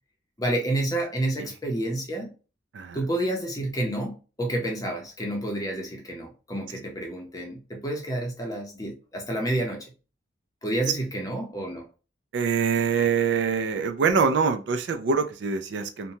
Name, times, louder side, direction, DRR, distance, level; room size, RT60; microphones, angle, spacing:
voice 1, 0.4-2.3 2.9-9.9 10.6-11.8, right 1 dB, 20° left, 1 dB, 0.6 m, -29 dB
voice 2, 12.3-16.1, right 5 dB, 60° right, 8 dB, 0.3 m, -24 dB
2.9 x 2.2 x 2.7 m, 0.34 s
head